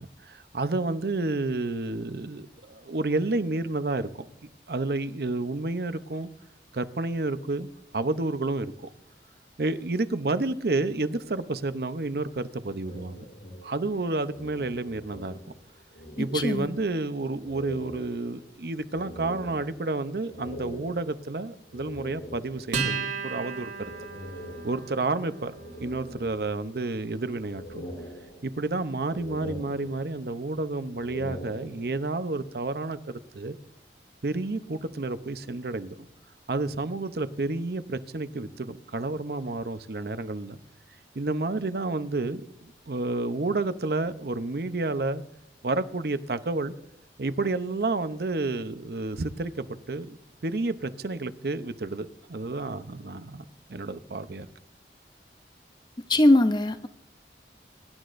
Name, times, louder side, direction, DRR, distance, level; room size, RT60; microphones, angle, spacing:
voice 1, 0.0-4.3 4.7-6.3 6.7-7.7 7.9-8.9 9.6-13.2 13.6-15.4 16.2-23.9 24.6-25.5 25.8-27.9 28.4-33.6 34.2-36.1 36.5-40.6 41.1-45.2 45.6-46.7 47.2-53.4 53.7-54.5, right 2 dB, 60° right, 0.7 m, -30 dB
sound 1, 12.8-15.7 15.9-17.0 17.4-22.9 23.8-25.1 25.5-26.9 27.3-28.8 29.1-30.4 30.8-32.2, left 1 dB, 70° left, 2.2 m, -43 dB
voice 2, 16.3-16.7 56.1-56.9, left 1 dB, 25° left, 0.5 m, -20 dB
Acoustic guitar, 22.7-29.6, right 5 dB, 90° right, 2.4 m, -37 dB
23.0 x 11.5 x 2.6 m
head